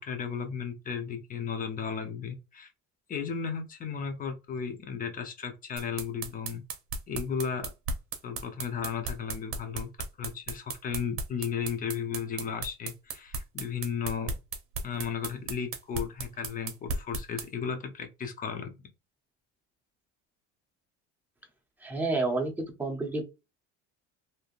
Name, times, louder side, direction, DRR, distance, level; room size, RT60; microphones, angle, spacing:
voice 1, 0.0-2.7 3.1-6.6 7.1-7.7 8.2-9.9 10.2-14.3 14.8-18.7, left 7 dB, 30° left, 0.7 m, -34 dB
sound 1, 5.8-17.5, right 4 dB, 45° right, 0.8 m, -35 dB
voice 2, 21.8-23.3, right 3 dB, 5° right, 0.8 m, -30 dB
3.4 x 2.8 x 2.5 m
cardioid pair, 155°, 29 cm